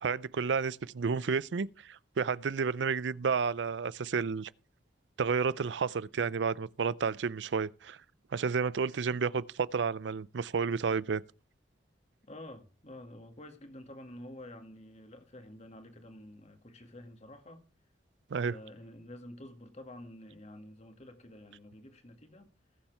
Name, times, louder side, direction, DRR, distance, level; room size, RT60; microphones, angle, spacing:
voice 1, 0.0-4.5 5.2-8.0 8.3-11.2 18.3-18.5, right 5 dB, 75° right, 0.5 m, -31 dB
voice 2, 12.3-17.6 18.5-22.5, left 1 dB, 40° left, 2.0 m, -49 dB
20.0 x 7.2 x 3.4 m
head